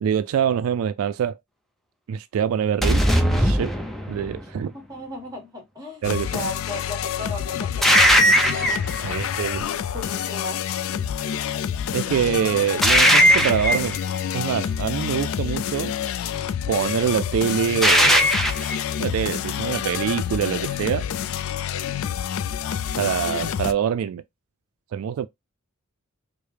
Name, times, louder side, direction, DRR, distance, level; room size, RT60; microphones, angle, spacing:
voice 1, 0.0-1.4 2.1-3.1 3.4-3.7 4.1-4.7 6.0-6.3 8.9-9.6 11.9-14.0 14.3-15.9 16.7-18.4 19.0-21.0 22.9-24.2 24.9-25.3, right 8 dB, 80° right, 0.3 m, -24 dB
sound 1, 2.8-4.4 7.8-9.0 12.8-14.0 17.8-18.8, equal, ahead, 0.5 m, -18 dB
voice 2, 4.7-8.9 9.9-10.7, left 1 dB, 20° right, 1.6 m, -36 dB
sound 2, 6.0-23.7, left 9 dB, 70° left, 0.3 m, -28 dB
4.7 x 2.1 x 3.2 m
head